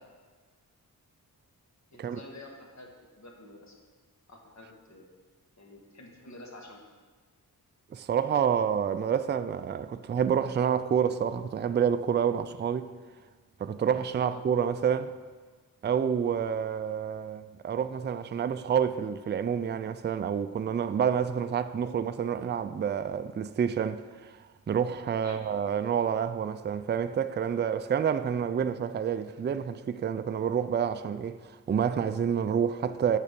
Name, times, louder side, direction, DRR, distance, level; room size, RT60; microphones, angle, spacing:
voice 1, 1.9-2.9 3.2-3.8 4.3-5.1 5.6-6.8 14.2-14.4 25.2-25.4, left 2 dB, 50° left, 1.8 m, -48 dB
voice 2, 7.9-12.9 13.6-15.1 15.8-24.4 24.7-33.2, right 8 dB, 30° right, 0.4 m, -28 dB
9.5 x 6.6 x 5.2 m
wide cardioid pair, 95°, 36 cm